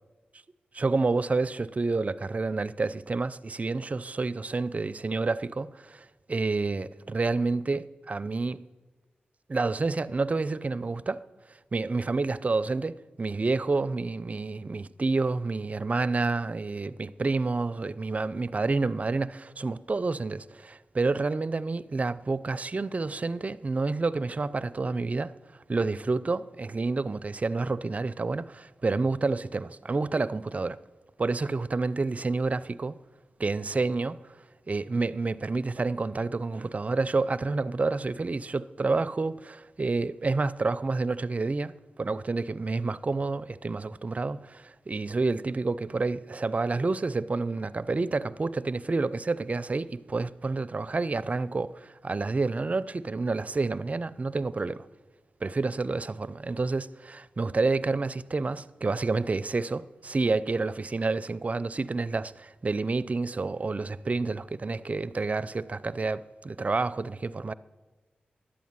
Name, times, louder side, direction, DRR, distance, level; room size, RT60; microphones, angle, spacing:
voice 1, 0.7-8.6 9.5-11.2 11.7-25.3 25.7-30.8 31.2-33.0 33.4-34.2 34.7-41.7 42.0-54.9 55.4-67.5, right 3 dB, 40° right, 0.5 m, -29 dB
11.5 x 8.3 x 9.5 m
cardioid pair, 50°, 4 cm